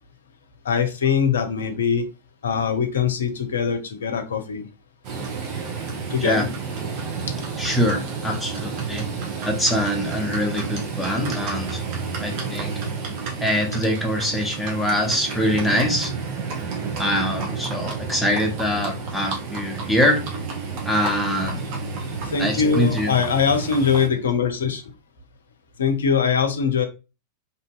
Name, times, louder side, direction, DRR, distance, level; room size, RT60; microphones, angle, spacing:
voice 1, 0.6-2.1 2.4-4.6 6.1-6.5 22.2-24.8 25.8-26.9, left 6 dB, 65° left, 7 dB, 0.5 m, -22 dB
Livestock farm animals working animals, 5.0-24.1, right 5 dB, 45° right, 0.9 m, -30 dB
voice 2, 7.6-9.0 9.4-11.8 12.2-12.7 13.4-16.1 17.0-20.2 20.8-21.6 22.4-23.1, equal, ahead, 0 dB, 0.7 m, -23 dB
2.7 x 2.5 x 2.3 m, 0.29 s
figure-of-eight pair, 90°, 0 cm